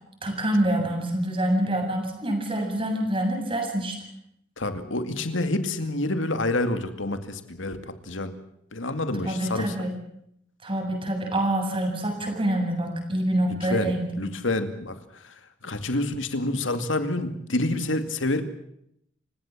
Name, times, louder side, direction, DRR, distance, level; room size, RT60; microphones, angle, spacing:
voice 1, 0.2-3.9 9.2-9.9 10.6-14.1, right 1 dB, 30° right, 3 dB, 7.5 m, -26 dB
voice 2, 4.6-8.3 8.7-9.9 13.7-18.4, left 2 dB, 85° left, 9 dB, 2.3 m, -28 dB
29.0 x 17.0 x 7.4 m, 0.74 s
head